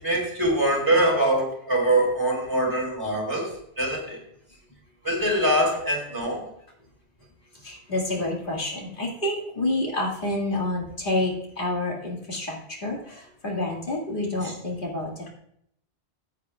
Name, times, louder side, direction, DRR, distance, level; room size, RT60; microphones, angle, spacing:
voice 1, 0.0-4.2 5.0-6.5 14.4-14.5, right 1 dB, 20° right, -3 dB, 4.1 m, -23 dB
voice 2, 7.6-15.3, left 2 dB, 55° left, -2 dB, 2.3 m, -28 dB
14.0 x 8.4 x 2.4 m, 0.73 s
omnidirectional pair, 1.1 m